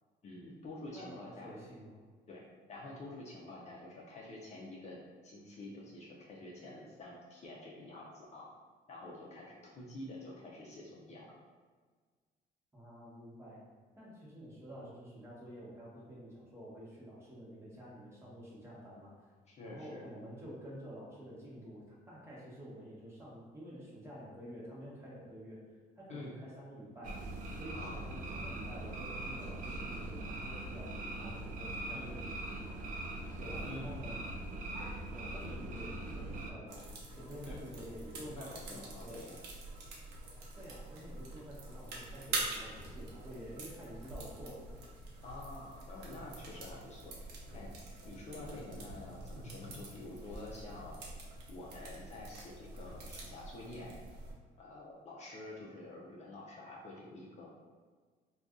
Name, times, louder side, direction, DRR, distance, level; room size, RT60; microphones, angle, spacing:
voice 1, 0.2-1.6 2.3-2.4 2.7-5.0 5.2-8.5 8.9-11.3 19.5-20.1 26.1-26.4 27.7-28.0 31.9-32.1 33.6-34.1 37.5-37.9 38.3-39.4 45.2-47.1 47.5-47.7 48.0-50.9 51.5-54.0 54.6-57.5, left 2 dB, 40° left, -4 dB, 0.6 m, -48 dB
voice 2, 0.9-1.9 12.7-13.6 14.0-19.3 19.6-25.6 26.0-27.2 27.5-32.8 33.3-34.2 35.1-39.2 40.6-44.8 45.1-45.2, equal, 15° right, -7 dB, 1.1 m, -49 dB
sound 1, 27.0-36.5, right 1 dB, 50° right, 0.4 m, -41 dB
sound 2, 36.7-54.3, right 2 dB, 85° right, 0.7 m, -45 dB
2.5 x 2.3 x 3.6 m, 1.5 s
cardioid pair, 110°, 17 cm